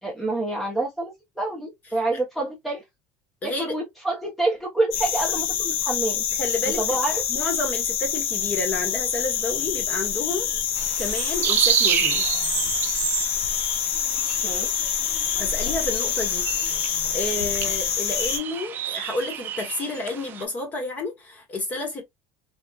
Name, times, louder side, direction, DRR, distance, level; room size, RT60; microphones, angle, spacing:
voice 1, 0.0-2.8 3.4-6.2 6.8-7.2 14.4-14.7, right 2 dB, ahead, 0.8 m, -27 dB
voice 2, 3.4-3.7 6.4-7.0 7.3-12.3 15.4-16.5 17.1-22.0, left 2 dB, 25° left, 1.1 m, -30 dB
sound 1, 4.9-18.4, left 8 dB, 85° left, 0.7 m, -26 dB
sound 2, 10.8-20.5, right 10 dB, 30° right, 0.4 m, -29 dB
4.0 x 2.2 x 2.3 m
cardioid pair, 170°, 7 cm